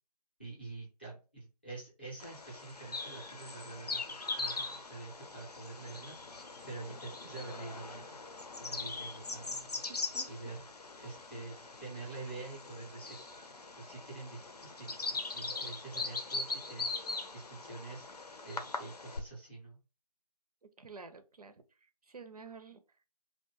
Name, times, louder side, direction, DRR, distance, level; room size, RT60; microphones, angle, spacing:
voice 1, 0.4-6.2 6.6-8.2 8.6-9.8 10.3-10.7 11.0-11.5 11.8-13.2 13.8-14.9 15.3-16.9 17.3-18.0 18.4-19.8, right 3 dB, 15° left, -5 dB, 0.6 m, -46 dB
Bird vocalization bird call bird song, 2.2-19.2, left 3 dB, 70° left, 0.6 m, -41 dB
voice 2, 9.9-10.3 11.3-11.5 20.6-23.0, right 5 dB, 65° right, 8 dB, 0.5 m, -51 dB
2.6 x 2.1 x 2.9 m, 0.32 s
figure-of-eight pair, 160°, 21 cm